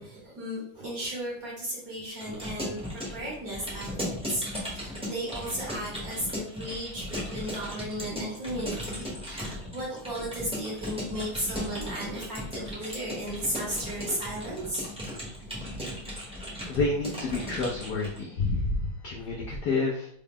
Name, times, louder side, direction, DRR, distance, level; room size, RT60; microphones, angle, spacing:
voice 1, 0.0-14.9, right 1 dB, 55° right, -4 dB, 1.2 m, -35 dB
Keyboard (musical) / Computer keyboard, 2.1-18.2, equal, 5° right, 0.6 m, -37 dB
voice 2, 15.9-20.1, left 3 dB, 80° left, -3 dB, 0.9 m, -29 dB
3.8 x 2.1 x 3.5 m, 0.64 s
omnidirectional pair, 2.3 m